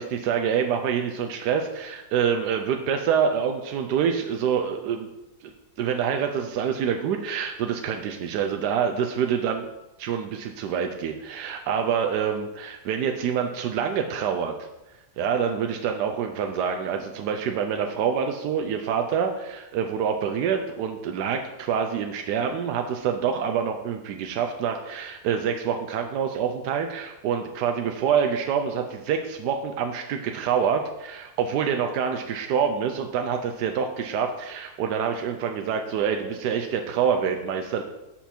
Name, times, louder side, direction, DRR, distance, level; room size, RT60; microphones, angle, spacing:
voice 1, 0.0-5.1 5.4-5.5 5.8-9.6 10.0-14.5 15.2-37.8, right 7 dB, 90° right, 4 dB, 1.2 m, -26 dB
7.2 x 5.8 x 4.3 m, 0.96 s
omnidirectional pair, 1.7 m